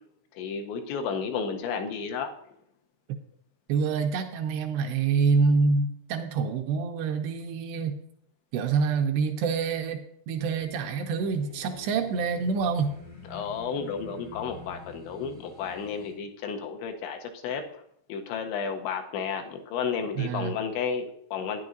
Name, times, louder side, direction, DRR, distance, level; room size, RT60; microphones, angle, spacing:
voice 1, 0.3-2.3 13.3-17.6 18.1-21.7, left 6 dB, 85° left, 5 dB, 3.1 m, -32 dB
voice 2, 3.7-8.0 8.5-12.9 20.2-20.6, right 5 dB, 85° right, 4 dB, 2.5 m, -26 dB
sound 1, 10.3-16.1, left 2 dB, 70° left, 0.8 m, -47 dB
12.0 x 9.7 x 2.6 m, 0.70 s
omnidirectional pair, 5.1 m